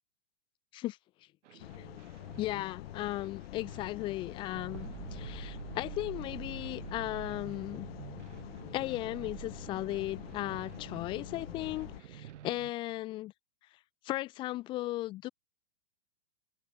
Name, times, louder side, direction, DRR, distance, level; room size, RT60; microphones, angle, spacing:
sound 1, 1.4-12.7, right 11 dB, 70° right, 5.3 m, -48 dB
voice 1, 1.5-2.1 2.4-7.9 8.7-13.3 14.0-15.3, left 17 dB, 15° left, 0.5 m, -36 dB
sound 2, 1.6-12.0, left 15 dB, 55° left, 4.8 m, -46 dB
open air
supercardioid pair, 160°, 36 cm